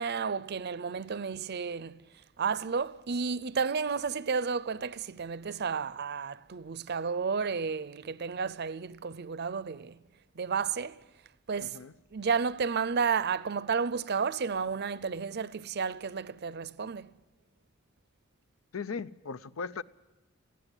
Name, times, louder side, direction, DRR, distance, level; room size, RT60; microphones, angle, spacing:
voice 1, 0.0-2.1 2.4-10.0 10.3-11.0 11.5-11.8 12.1-17.2, right 5 dB, 55° right, 0.6 m, -32 dB
voice 2, 11.6-11.9 18.7-19.8, left 5 dB, 85° left, 0.7 m, -38 dB
19.0 x 16.0 x 9.8 m
head